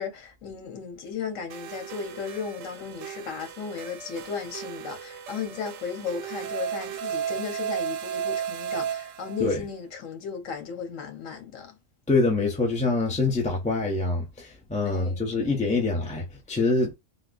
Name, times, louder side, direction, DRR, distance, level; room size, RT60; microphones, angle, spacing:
voice 1, 0.0-11.8 14.8-15.7, left 6 dB, 90° left, 1.3 m, -35 dB
sound 1, 1.5-9.6, right 8 dB, 90° right, 1.0 m, -34 dB
voice 2, 12.1-16.9, left 3 dB, 10° left, 0.4 m, -25 dB
3.6 x 2.1 x 2.4 m
omnidirectional pair, 1.3 m